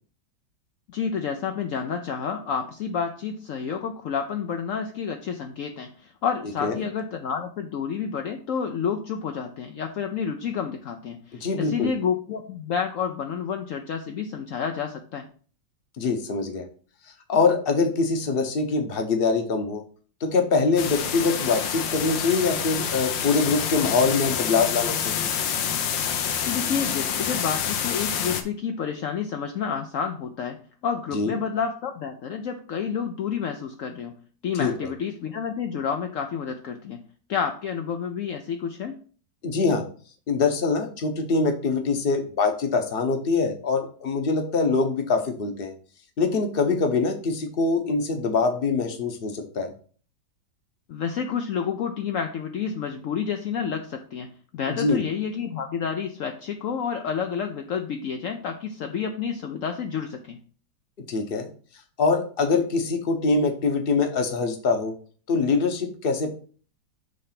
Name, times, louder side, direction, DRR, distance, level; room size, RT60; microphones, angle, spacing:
voice 1, 0.9-15.3 26.4-34.1 34.4-37.0 37.3-39.0 50.9-60.4, left 7 dB, 70° left, 5 dB, 0.7 m, -29 dB
voice 2, 11.3-11.9 16.0-16.6 17.3-19.8 20.2-25.3 31.1-31.3 34.5-34.7 39.4-39.9 40.3-45.7 46.2-49.7 54.7-55.0 61.1-61.5 62.0-64.9 65.3-66.3, left 4 dB, 40° left, 6 dB, 0.9 m, -24 dB
sound 1, 20.8-28.4, left 8 dB, 85° left, 1.5 m, -27 dB
6.6 x 3.3 x 5.8 m, 0.42 s
omnidirectional pair, 2.0 m